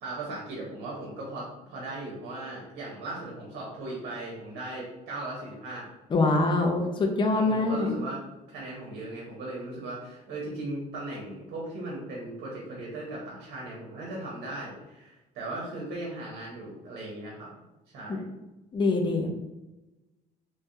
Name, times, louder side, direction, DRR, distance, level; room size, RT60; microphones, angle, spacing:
voice 1, 0.0-5.9 7.3-8.2 8.5-17.5 17.9-18.2, right 2 dB, 70° right, -4 dB, 1.1 m, -38 dB
voice 2, 6.1-7.9 18.7-19.3, left 2 dB, 30° left, 2 dB, 0.7 m, -24 dB
3.3 x 3.2 x 2.7 m, 1.0 s
cardioid pair, 110°, 17 cm